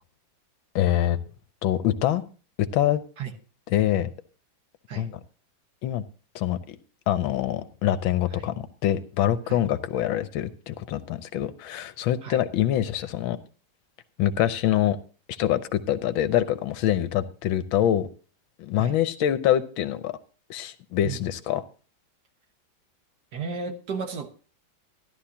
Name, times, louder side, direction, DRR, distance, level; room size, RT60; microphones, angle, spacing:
voice 1, 0.7-1.2 1.6-2.2 2.6-3.0 3.7-4.1 4.9-5.2 5.8-6.0 6.3-6.8 7.1-13.4 14.2-15.0 15.3-18.1 18.6-20.2 20.5-21.6, left 11 dB, 80° left, 1.5 m, -25 dB
voice 2, 23.3-24.3, right 5 dB, 55° right, 1.7 m, -33 dB
13.5 x 11.5 x 2.8 m
omnidirectional pair, 2.2 m